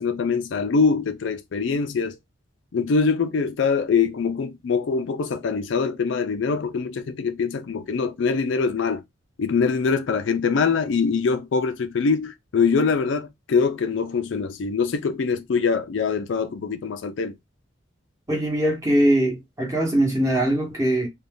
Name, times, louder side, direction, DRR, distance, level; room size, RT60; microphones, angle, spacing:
voice 1, 0.0-2.2 2.7-9.0 9.4-17.4, left 5 dB, 70° left, 0.4 m, -23 dB
voice 2, 18.3-21.1, right 1 dB, 15° right, 1.1 m, -21 dB
2.6 x 2.2 x 3.4 m
head